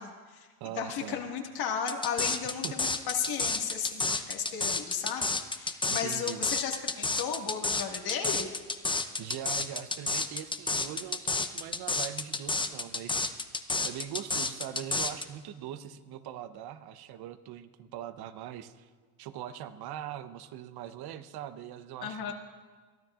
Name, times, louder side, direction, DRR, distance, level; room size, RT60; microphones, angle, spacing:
voice 1, 0.0-0.5 0.8-8.5 22.0-22.3, left 7 dB, 55° left, 2 dB, 2.0 m, -34 dB
voice 2, 0.6-1.2 2.6-2.8 5.9-6.4 9.2-13.5 13.8-18.9 19.2-22.3, right 10 dB, 55° right, 12 dB, 1.0 m, -41 dB
sound 1, 1.9-15.2, left 3 dB, 10° left, 0.8 m, -30 dB
22.5 x 14.0 x 2.5 m, 1.4 s
hypercardioid pair, 80°, 45 cm